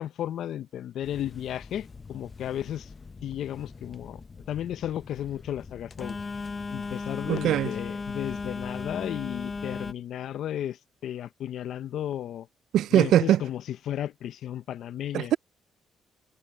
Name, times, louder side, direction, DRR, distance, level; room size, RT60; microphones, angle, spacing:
voice 1, 0.0-2.9 3.2-4.2 4.5-6.2 6.7-12.5 12.9-15.3, left 11 dB, 75° left, 0.7 m, -34 dB
Telephone, 1.0-9.9, left 4 dB, 30° left, 0.8 m, -38 dB
voice 2, 7.3-7.7 12.7-13.4 15.1-15.4, right 12 dB, 80° right, 0.3 m, -21 dB
cardioid pair, 90°, 0 cm